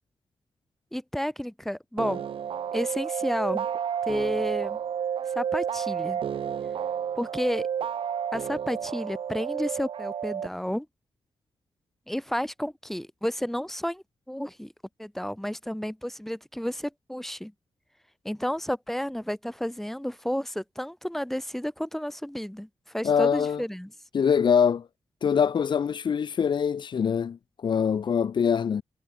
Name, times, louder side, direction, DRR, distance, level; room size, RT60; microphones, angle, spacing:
voice 1, 0.9-2.2 2.7-3.7 4.1-4.8 5.4-6.2 7.2-7.7 8.3-10.9 12.1-14.7 15.0-17.5 18.2-23.9, equal, 5° left, 7.2 m, -31 dB
sound 1, 2.0-10.5, right 8 dB, 85° right, 5.0 m, -31 dB
voice 2, 23.0-23.6 24.1-24.9 25.2-28.8, left 7 dB, 60° left, 1.7 m, -24 dB
wide cardioid pair, 130°, 9 cm